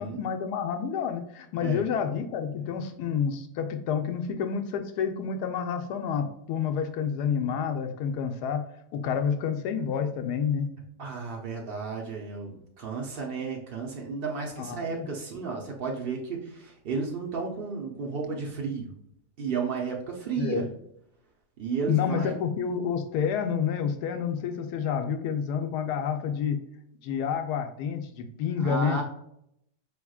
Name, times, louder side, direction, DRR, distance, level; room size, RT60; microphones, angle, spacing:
voice 1, 0.0-8.6 8.9-10.7 14.6-15.1 20.4-20.6 21.9-26.6 27.0-29.0, left 7 dB, 75° left, 7 dB, 1.1 m, -29 dB
voice 2, 11.0-18.9 19.4-20.6 21.6-22.4 28.6-29.0, right 5 dB, 65° right, -1 dB, 0.5 m, -33 dB
4.9 x 3.5 x 2.3 m, 0.75 s
omnidirectional pair, 1.9 m